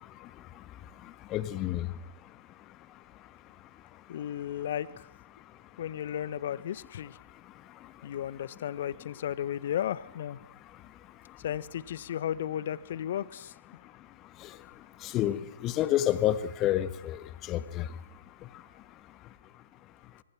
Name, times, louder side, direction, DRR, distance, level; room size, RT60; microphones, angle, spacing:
voice 1, 1.3-1.9 15.1-15.4 15.6-17.2 17.5-17.8, left 13 dB, 20° left, 12 dB, 1.5 m, -28 dB
voice 2, 4.1-4.9 5.8-7.1 8.0-10.4 11.4-13.5, left 10 dB, 45° left, 17 dB, 1.2 m, -34 dB
25.0 x 22.5 x 6.2 m, 0.81 s
figure-of-eight pair, 130°, 0 cm